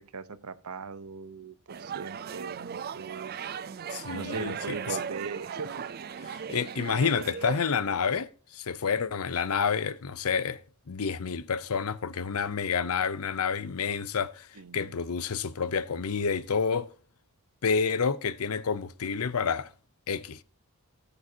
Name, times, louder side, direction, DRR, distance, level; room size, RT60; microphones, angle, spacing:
voice 1, 0.1-3.5 4.1-5.8 6.2-6.5 14.6-14.9, right 4 dB, 85° right, 0.8 m, -39 dB
sound 1, 1.7-7.6, right 7 dB, 45° right, 0.4 m, -37 dB
voice 2, 3.9-5.0 6.5-10.6 10.9-14.5 14.7-16.9 17.6-19.7 20.1-20.4, left 6 dB, 75° left, 0.6 m, -29 dB
18.5 x 7.0 x 2.8 m
head